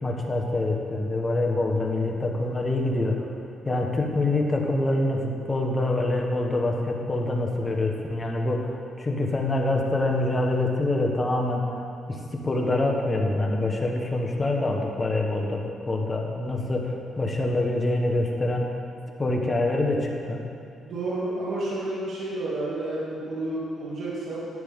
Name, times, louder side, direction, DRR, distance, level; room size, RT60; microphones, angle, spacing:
voice 1, 0.0-3.3 3.6-11.6 12.1-18.7 19.2-20.5, left 2 dB, 25° left, 1 dB, 1.4 m, -25 dB
voice 2, 20.9-24.5, right 2 dB, 60° right, -7 dB, 2.7 m, -30 dB
11.0 x 9.7 x 3.8 m, 2.4 s
cardioid pair, 90°, 0 cm